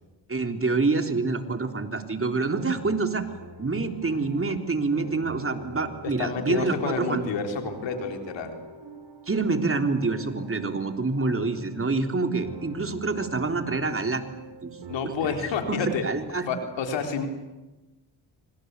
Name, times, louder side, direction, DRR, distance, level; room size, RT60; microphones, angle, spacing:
voice 1, 0.3-3.3 3.6-7.2 9.3-14.2 14.6-14.7 15.0-15.4 15.7-16.4, right 3 dB, 30° right, 6 dB, 3.6 m, -27 dB
sound 1, 2.3-16.1, right 2 dB, 75° right, 7.1 m, -45 dB
voice 2, 6.0-8.5 14.9-16.0 16.5-17.3, left 5 dB, 80° left, 5 dB, 4.0 m, -29 dB
26.0 x 26.0 x 8.3 m, 1.1 s
supercardioid pair, 60°, 43 cm